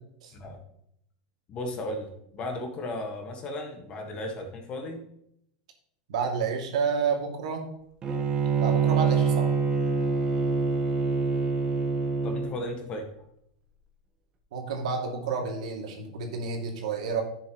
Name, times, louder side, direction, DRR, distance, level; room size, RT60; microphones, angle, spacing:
voice 1, 1.5-5.0 12.2-13.1, left 1 dB, 30° left, 3 dB, 1.6 m, -35 dB
voice 2, 6.1-7.6 8.6-9.5 14.5-17.2, right 5 dB, 80° right, 2 dB, 2.4 m, -30 dB
Bowed string instrument, 8.0-12.6, right 5 dB, 25° right, 1.3 m, -25 dB
11.0 x 7.0 x 3.0 m, 0.74 s
supercardioid pair, 145°, 4 cm